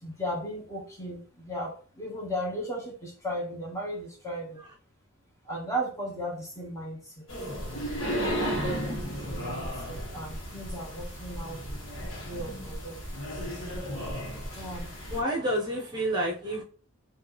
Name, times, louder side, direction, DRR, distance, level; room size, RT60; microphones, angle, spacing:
voice 1, 0.0-4.6 5.5-7.2 8.4-8.9 9.3-11.6 12.2-13.0 13.5-13.6 14.0-14.1 14.5-14.9, equal, 15° left, -2 dB, 1.1 m, -36 dB
sound 1, 7.3-15.2, equal, 70° left, 1.5 m, -34 dB
voice 2, 8.3-8.7 15.1-16.6, right 1 dB, 20° right, -3 dB, 0.9 m, -30 dB
3.2 x 2.8 x 4.0 m, 0.41 s
head